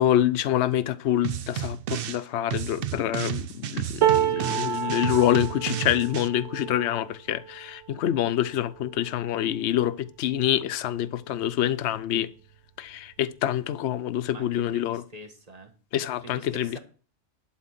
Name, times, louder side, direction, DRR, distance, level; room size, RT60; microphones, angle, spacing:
voice 1, 0.0-12.3 12.8-15.0 15.9-16.8, left 11 dB, 65° left, 0.9 m, -26 dB
sound 1, 1.2-2.2 2.5-6.3, right 11 dB, 60° right, 0.7 m, -32 dB
sound 2, 4.0-10.2 10.7-10.9 11.2-12.0 13.0-13.1, right 10 dB, 75° right, 1.1 m, -30 dB
voice 2, 4.3-5.3 14.3-15.7 16.2-16.8, right 2 dB, 30° right, 1.5 m, -45 dB
11.5 x 4.4 x 7.3 m
omnidirectional pair, 1.3 m